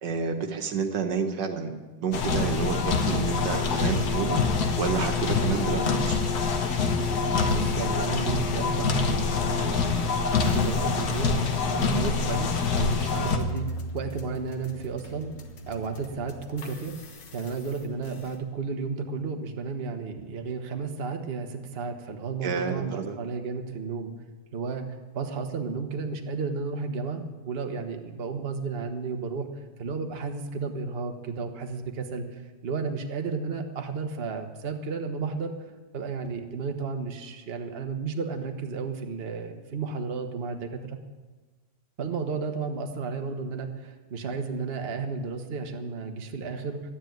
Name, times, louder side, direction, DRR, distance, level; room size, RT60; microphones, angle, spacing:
voice 1, 0.0-1.7 2.0-4.4 4.8-6.2 22.4-23.2, right 6 dB, 80° right, 5 dB, 1.9 m, -29 dB
sound 1, 2.1-13.4, left 4 dB, 65° left, 1.7 m, -25 dB
voice 2, 7.5-10.1 10.4-15.3 15.7-24.1 24.5-24.9 25.1-29.5 29.8-35.5 35.9-41.0 42.0-46.8, right 5 dB, 40° right, 5 dB, 1.3 m, -33 dB
sound 2, 10.4-18.4, equal, 80° left, 2.0 m, -40 dB
12.5 x 9.8 x 9.2 m, 1.3 s
omnidirectional pair, 1.9 m